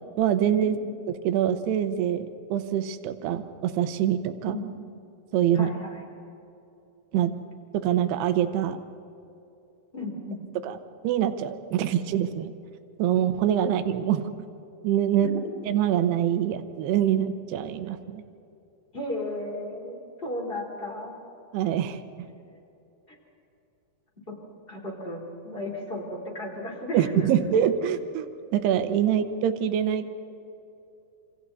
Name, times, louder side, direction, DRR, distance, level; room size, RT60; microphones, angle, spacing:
voice 1, 0.2-0.8 1.2-4.6 5.3-5.7 7.1-7.3 7.8-8.8 10.6-10.8 11.0-12.5 13.0-14.3 14.8-15.3 15.6-18.2 21.5-22.0 26.9-30.1, right 10 dB, 85° right, 9 dB, 3.0 m, -25 dB
voice 2, 5.5-6.0 9.9-10.4 15.2-15.5 18.9-21.1 24.3-24.4 24.7-27.3, left 1 dB, 15° left, -1 dB, 3.7 m, -34 dB
27.5 x 27.5 x 4.1 m, 2.8 s
omnidirectional pair, 4.6 m